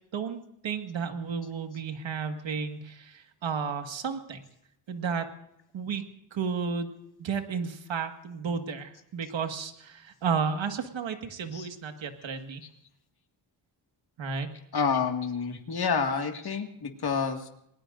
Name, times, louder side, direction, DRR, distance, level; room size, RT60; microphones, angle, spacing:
voice 1, 0.1-4.4 4.9-5.3 5.7-6.0 6.3-12.6 14.2-14.5, right 6 dB, 75° right, 6 dB, 1.9 m, -33 dB
voice 2, 14.7-17.5, left 5 dB, 55° left, 4 dB, 2.0 m, -28 dB
28.5 x 19.5 x 2.6 m, 0.77 s
cardioid pair, 70°, 45 cm